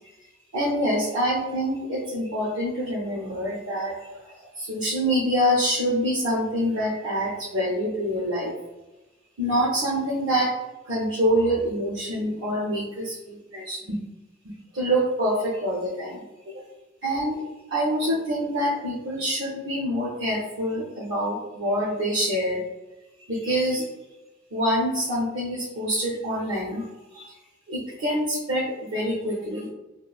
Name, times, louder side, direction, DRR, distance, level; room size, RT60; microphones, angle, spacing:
voice 1, 0.5-8.5 9.4-10.5 10.9-14.0 14.4-16.2 17.0-17.4 17.7-22.6 23.3-23.8 24.5-26.8 27.1-27.3 27.7-28.6 28.9-29.7, equal, 65° right, -6 dB, 0.6 m, -26 dB
3.0 x 2.4 x 2.3 m, 1.1 s
head